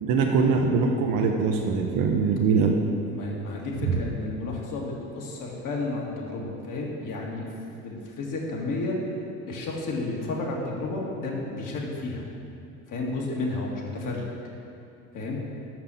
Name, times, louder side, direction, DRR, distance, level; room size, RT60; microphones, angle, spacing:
voice 1, 0.0-2.8 3.8-4.0, right 5 dB, 50° right, 2 dB, 0.9 m, -22 dB
voice 2, 3.1-7.5 7.8-9.0 9.5-12.3 12.9-14.3 15.1-15.4, left 2 dB, 45° left, -2 dB, 2.0 m, -32 dB
6.5 x 6.0 x 7.4 m, 2.6 s
hypercardioid pair, 65°, 43 cm